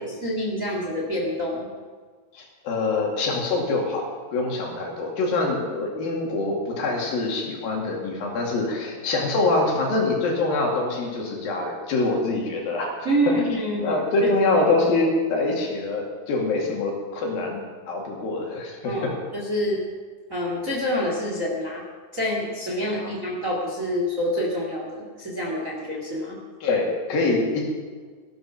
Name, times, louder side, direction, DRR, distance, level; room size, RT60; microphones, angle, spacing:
voice 1, 0.2-1.7 13.0-14.0 18.8-19.8 20.3-21.8 22.1-26.4, equal, 25° right, -2 dB, 2.0 m, -27 dB
voice 2, 2.3-4.0 4.3-12.9 13.7-17.6 17.9-18.9 26.6-27.7, left 3 dB, 70° left, -1 dB, 4.1 m, -24 dB
16.5 x 12.0 x 5.7 m, 1.5 s
omnidirectional pair, 4.4 m